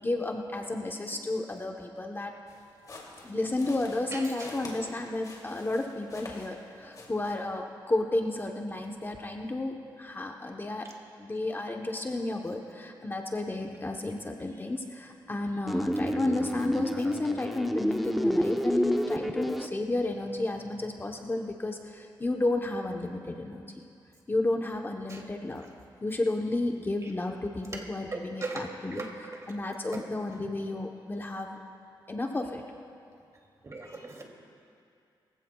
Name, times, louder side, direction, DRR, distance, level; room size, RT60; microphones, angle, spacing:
voice 1, 0.0-2.3 3.2-10.9 11.2-23.8 24.3-25.6 26.0-29.0 29.5-31.6 32.1-32.6 33.8-34.0, left 2 dB, 25° left, 2 dB, 0.9 m, -32 dB
sound 1, 2.5-6.7 6.9-7.3, left 2 dB, 45° left, 2.7 m, -47 dB
voice 2, 4.1-4.5 6.8-7.1 25.1-25.2 27.0-27.1 27.7-27.8 28.1-29.5 29.9-30.0 30.3-30.5 33.6-34.2, right 3 dB, 35° right, 0 dB, 2.6 m, -39 dB
sound 2, 15.7-19.7, equal, ahead, 0.7 m, -29 dB
23.0 x 15.5 x 2.3 m, 2.5 s
cardioid pair, 80°, 9 cm